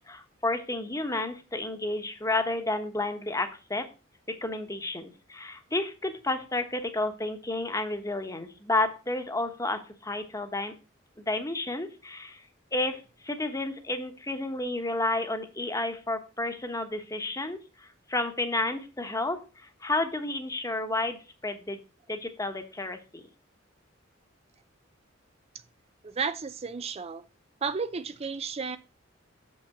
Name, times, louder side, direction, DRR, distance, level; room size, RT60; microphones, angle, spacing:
voice 1, 0.1-3.8 4.4-10.7 11.3-12.4 12.7-21.8 22.1-23.3, left 2 dB, 15° left, 1.1 m, -31 dB
voice 2, 26.0-27.2 27.6-28.8, right 5 dB, 30° right, 0.5 m, -32 dB
7.2 x 5.5 x 7.0 m
head